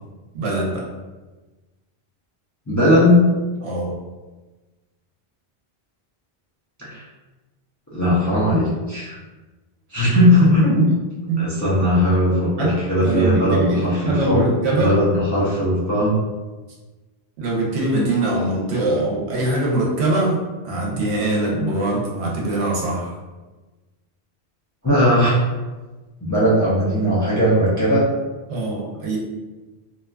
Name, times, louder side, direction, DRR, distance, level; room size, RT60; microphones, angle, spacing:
voice 1, 0.3-0.8 3.6-3.9 10.6-10.9 11.3-11.4 11.7-11.9 12.6-15.0 17.4-23.1 28.5-29.2, right 2 dB, 80° right, -2 dB, 0.9 m, -22 dB
voice 2, 2.7-3.2 6.8-7.0 7.9-9.2 9.9-10.9 11.4-14.4 14.8-16.1 24.8-25.4 26.2-28.1, left 1 dB, 30° left, -8 dB, 0.3 m, -18 dB
2.7 x 2.3 x 2.3 m, 1.2 s
omnidirectional pair, 1.1 m